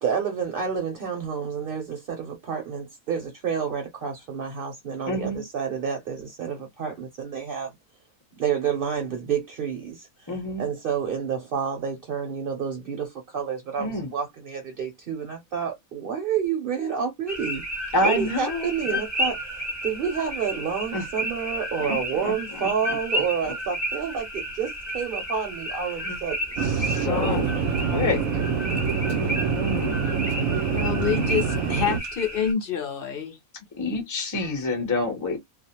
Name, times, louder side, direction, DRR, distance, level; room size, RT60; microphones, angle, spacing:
voice 1, 0.0-7.7 8.4-17.6 18.0-26.6 27.5-27.6 30.6-30.9, right 7 dB, 50° right, 0.8 m, -29 dB
voice 2, 5.1-5.4 10.3-10.7 13.8-14.1 17.9-18.7 20.9-21.1 21.8-23.0 25.9-26.2 26.6-27.5 27.8-28.2 29.0-30.0 33.8-35.4, left 2 dB, 20° left, 0.6 m, -28 dB
sound 1, 17.3-32.5, equal, 20° right, 0.4 m, -32 dB
Chatter / Fixed-wing aircraft airplane, 26.6-32.0, right 6 dB, 80° right, 1.0 m, -25 dB
voice 3, 27.0-27.4 27.9-28.2 30.7-33.4, left 8 dB, 60° left, 0.6 m, -28 dB
2.4 x 2.0 x 2.8 m
omnidirectional pair, 1.5 m